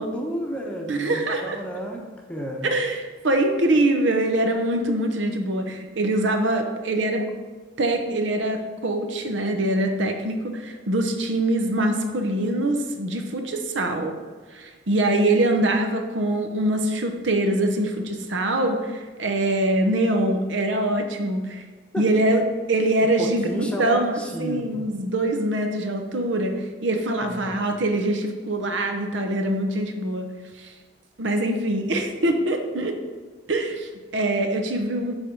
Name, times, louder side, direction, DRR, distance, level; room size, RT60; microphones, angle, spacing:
voice 1, 0.0-2.0 2.3-2.7 21.9-22.1 23.2-24.9 27.2-27.6, equal, 5° left, 0 dB, 0.8 m, -32 dB
voice 2, 0.9-1.6 2.6-7.3 7.8-14.2 14.5-21.6 22.0-22.4 22.7-30.3 30.6-30.7 31.2-33.0 33.5-35.1, right 1 dB, 75° right, 5 dB, 0.8 m, -24 dB
8.2 x 3.5 x 5.2 m, 1.4 s
head